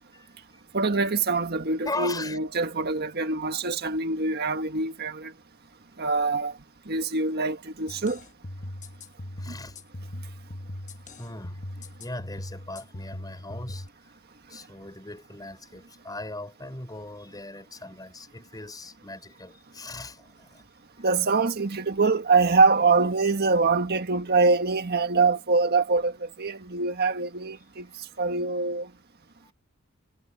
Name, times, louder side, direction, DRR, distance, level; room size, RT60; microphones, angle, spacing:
voice 1, 0.1-0.6 1.8-2.4 9.4-9.8 11.2-11.6 12.0-13.9 14.5-20.6, left 2 dB, 20° left, 4.4 m, -39 dB
voice 2, 0.7-5.3 6.0-6.5 6.9-8.2 21.0-27.9 28.2-28.9, right 4 dB, 50° right, 1.6 m, -24 dB
sound 1, 7.9-13.9, left 1 dB, 35° left, 1.2 m, -39 dB
head